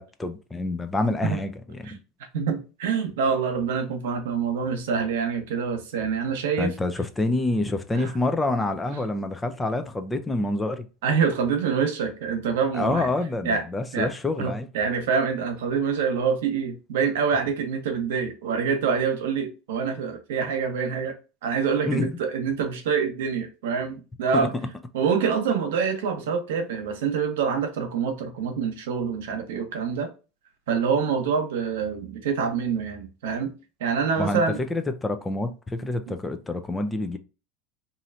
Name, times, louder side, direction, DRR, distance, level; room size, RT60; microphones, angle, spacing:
voice 1, 0.0-1.8 6.6-10.9 12.7-14.7 21.9-22.1 24.3-24.5 34.2-34.4 34.7-37.2, left 2 dB, 15° left, 0.5 m, -27 dB
voice 2, 2.3-6.7 7.9-8.1 11.0-13.1 13.4-13.6 13.9-14.1 14.4-21.1 21.4-24.5 24.9-30.1 30.7-33.5 33.8-34.6 36.1-36.2, right 6 dB, 85° right, 0.9 m, -26 dB
3.1 x 2.6 x 2.6 m
supercardioid pair, 110°, 0 cm